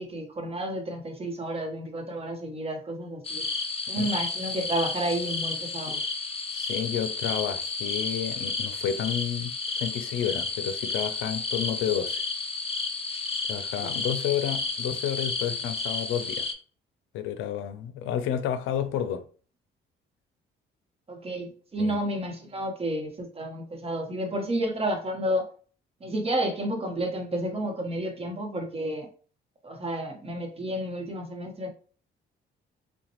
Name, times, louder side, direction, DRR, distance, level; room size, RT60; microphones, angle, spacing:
voice 1, 0.0-3.4 3.9-6.0 21.1-25.5 26.0-29.1 29.6-31.7, right 1 dB, 30° right, 0.9 m, -31 dB
sound 1, 3.2-16.5, left 3 dB, 30° left, 0.5 m, -32 dB
voice 2, 6.5-9.5 9.8-12.2 13.5-16.5 17.1-19.2 21.8-22.0, left 9 dB, 90° left, 0.4 m, -30 dB
3.8 x 2.2 x 2.9 m
cardioid pair, 90°, 20 cm